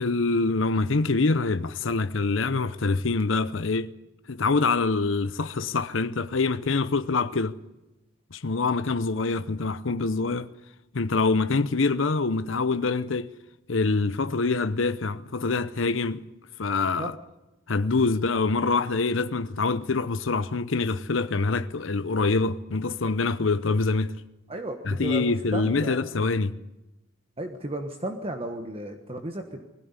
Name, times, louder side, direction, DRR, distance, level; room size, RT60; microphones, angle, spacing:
voice 1, 0.0-3.9 4.3-7.6 8.3-10.5 10.9-13.3 13.7-16.2 16.6-17.1 17.7-24.1 24.8-26.5, left 3 dB, 75° left, 0.8 m, -25 dB
voice 2, 24.5-26.0 27.4-29.6, right 1 dB, 30° right, 1.3 m, -34 dB
21.0 x 16.0 x 9.7 m
head